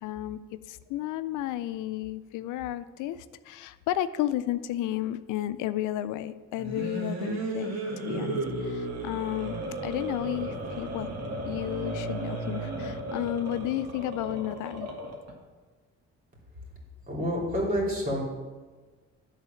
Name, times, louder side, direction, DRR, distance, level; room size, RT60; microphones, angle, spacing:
voice 1, 0.0-9.6 9.8-11.1 11.4-14.9, left 13 dB, 90° left, 13 dB, 0.5 m, -32 dB
sound 1, 6.5-15.3, right 2 dB, 60° right, 1.8 m, -34 dB
voice 2, 17.1-18.2, equal, 30° right, -3 dB, 3.2 m, -28 dB
9.7 x 4.1 x 6.9 m, 1.3 s
cardioid pair, 90°, 30 cm